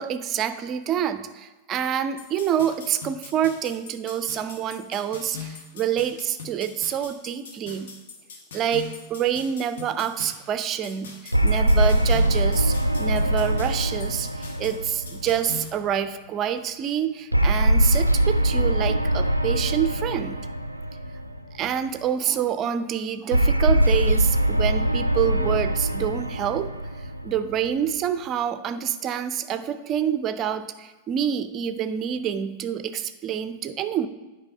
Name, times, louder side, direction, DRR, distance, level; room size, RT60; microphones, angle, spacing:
voice 1, 0.0-7.9 8.5-20.4 21.5-26.7 27.2-34.1, right 9 dB, 30° right, 11 dB, 0.5 m, -27 dB
sound 1, 2.2-15.7, left 5 dB, 60° left, 1.1 m, -41 dB
sound 2, 11.3-15.9 17.3-21.7 23.3-27.9, right 1 dB, 90° right, 0.4 m, -22 dB
8.9 x 4.9 x 5.0 m, 1.2 s
figure-of-eight pair, 90°, 0 cm